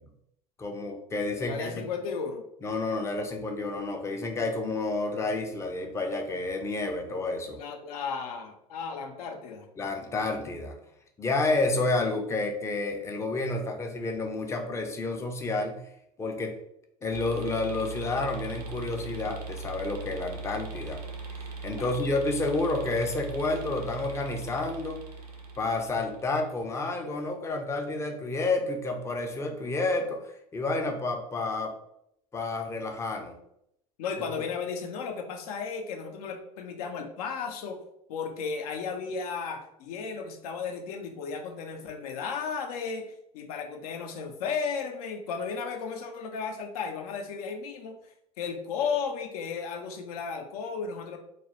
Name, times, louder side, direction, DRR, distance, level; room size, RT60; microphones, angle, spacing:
voice 1, 0.6-1.8 2.6-7.6 9.8-10.8 11.2-15.8 16.2-16.5 17.0-21.0 21.6-25.0 25.6-31.7 32.3-33.4, left 2 dB, 15° left, 3 dB, 0.4 m, -30 dB
voice 2, 1.4-2.4 7.6-9.7 21.8-21.9 34.0-37.8 38.1-48.0 48.4-51.2, left 5 dB, 75° left, 4 dB, 0.5 m, -34 dB
sound 1, 17.1-26.6, right 3 dB, 85° right, 0.5 m, -40 dB
2.3 x 2.0 x 2.8 m, 0.76 s
hypercardioid pair, 85°, 20 cm